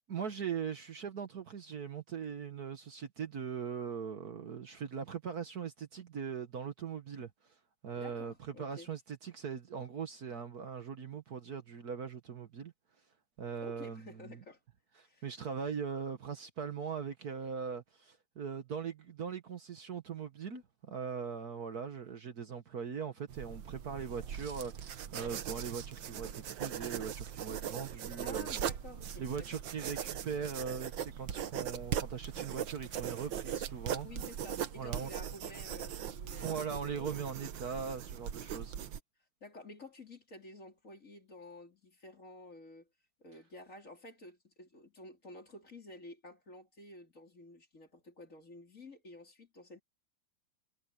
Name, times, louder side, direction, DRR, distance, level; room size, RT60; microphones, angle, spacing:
voice 1, 0.1-7.3 7.8-8.3 8.6-12.7 13.4-14.4 15.0-28.5 29.2-34.1 34.8-35.1 36.4-38.7, right 6 dB, 55° right, 1.7 m, -40 dB
voice 2, 8.0-8.9 13.6-14.6 15.0-15.3 28.2-29.6 34.0-37.2 38.3-38.7 39.4-42.9 43.2-49.8, left 2 dB, 40° left, 4.2 m, -52 dB
sound 1, 23.3-39.0, right 9 dB, 75° right, 1.8 m, -40 dB
omnidirectional pair, 2.1 m